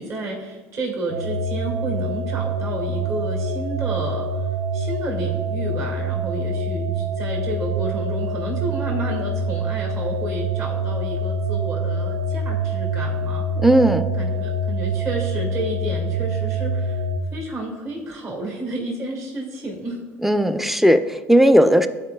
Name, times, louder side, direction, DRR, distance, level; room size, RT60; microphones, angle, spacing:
voice 1, 0.0-4.3 4.7-13.4 14.2-20.0, right 1 dB, 50° right, -1 dB, 1.8 m, -31 dB
sound 1, 1.1-17.2, right 2 dB, 75° right, 0.6 m, -25 dB
voice 2, 13.6-14.1 20.2-21.9, equal, 5° right, 11 dB, 0.4 m, -16 dB
11.5 x 4.4 x 2.2 m, 1.5 s
supercardioid pair, 90°, 7 cm